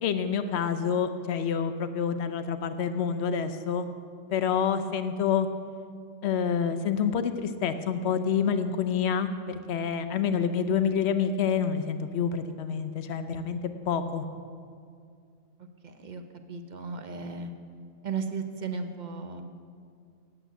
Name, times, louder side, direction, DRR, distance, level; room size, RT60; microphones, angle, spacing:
voice 1, 0.0-3.9 4.3-5.5 6.2-14.2, left 7 dB, 60° left, 10 dB, 0.9 m, -28 dB
voice 2, 15.8-16.2 16.5-17.5 18.0-19.4, right 5 dB, 45° right, 7 dB, 0.7 m, -35 dB
8.6 x 7.9 x 9.1 m, 2.2 s
omnidirectional pair, 1.4 m